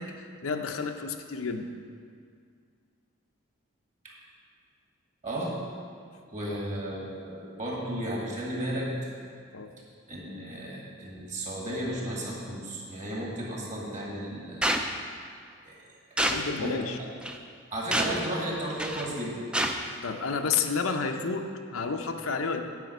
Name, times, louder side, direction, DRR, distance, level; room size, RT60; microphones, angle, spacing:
voice 1, 0.0-1.7 9.5-9.7 16.2-17.0 19.8-22.6, left 5 dB, 90° left, 5 dB, 0.7 m, -31 dB
voice 2, 5.2-5.5 6.3-9.1 10.1-14.6 15.7-15.8 16.6-16.8 17.7-19.4, right 1 dB, 35° right, -3 dB, 2.0 m, -34 dB
sound 1, 14.6-14.9 16.2-16.4 17.2-17.4 17.9-18.2 18.8-19.1 19.5-19.7, right 1 dB, 5° right, 0.3 m, -27 dB
9.4 x 5.1 x 7.9 m, 2.2 s
head